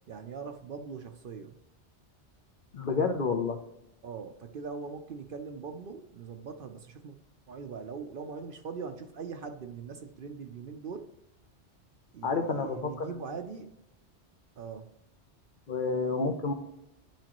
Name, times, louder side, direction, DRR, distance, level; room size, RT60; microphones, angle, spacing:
voice 1, 0.1-1.6 4.0-7.2 7.5-11.1 12.1-13.7 14.6-14.9, right 5 dB, 55° right, 7 dB, 0.7 m, -41 dB
voice 2, 2.7-3.6 12.2-13.1 15.7-16.5, left 4 dB, 50° left, 6 dB, 0.8 m, -29 dB
10.5 x 4.9 x 3.0 m, 0.85 s
omnidirectional pair, 1.2 m